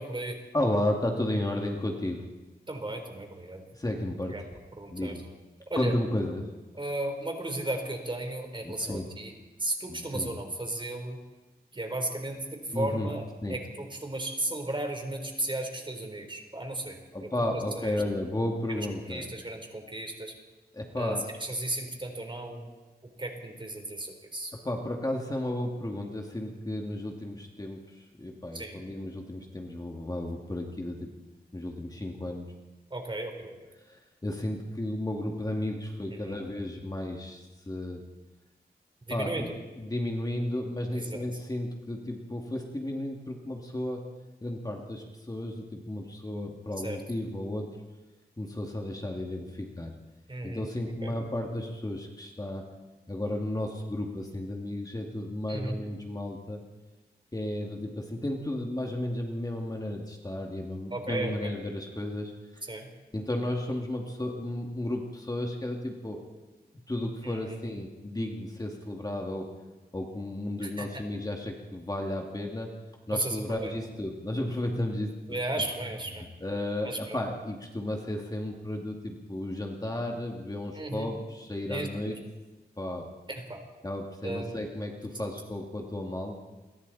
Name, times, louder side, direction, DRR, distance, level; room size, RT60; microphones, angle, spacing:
voice 1, 0.0-0.4 2.7-3.6 4.3-4.4 4.8-5.2 5.7-5.9 6.7-9.3 9.6-11.2 11.7-13.2 13.5-18.0 18.7-20.3 21.0-22.7 23.2-24.5 28.5-28.8 32.9-33.6 36.1-36.3 39.1-39.5 40.9-41.2 46.8-47.0 50.3-50.7 51.0-51.1 55.5-55.8 60.9-61.5 62.6-62.9 67.2-67.6 70.6-71.0 73.1-73.7 75.3-76.3 76.8-77.2 80.8-81.1 81.7-82.2 83.3-83.6 84.2-84.5 85.1-85.3, right 2 dB, 30° right, 4 dB, 4.0 m, -35 dB
voice 2, 0.5-2.3 3.8-4.4 4.9-5.2 5.7-6.5 8.6-9.1 9.9-10.3 12.7-13.1 13.4-13.6 17.1-19.3 20.7-21.3 24.6-31.1 31.5-32.5 33.8-38.0 39.1-39.5 39.8-44.1 44.4-47.8 48.4-49.9 50.4-52.7 53.1-56.6 57.3-62.3 63.1-66.2 66.9-69.5 69.9-72.7 73.1-75.4 76.2-82.2 82.8-83.1 83.8-86.3, left 1 dB, 20° left, 1 dB, 2.6 m, -33 dB
29.0 x 23.0 x 4.3 m, 1.2 s
wide cardioid pair, 95°, 17 cm